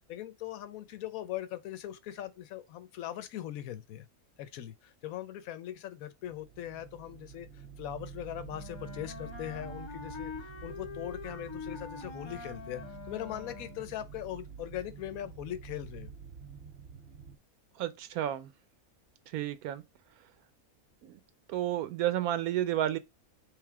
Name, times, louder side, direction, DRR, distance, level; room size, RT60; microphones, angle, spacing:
voice 1, 0.1-4.1 4.4-12.8 13.1-16.1, left 12 dB, 75° left, 1.0 m, -40 dB
sound 1, 6.2-17.4, right 6 dB, 65° right, 0.6 m, -48 dB
Wind instrument woodwind instrument, 8.5-13.9, left 5 dB, 45° left, 0.3 m, -44 dB
voice 2, 17.8-18.5 19.3-19.8 21.0-21.2 21.5-23.0, right 12 dB, 80° right, 1.1 m, -31 dB
3.4 x 3.3 x 4.6 m
omnidirectional pair, 1.5 m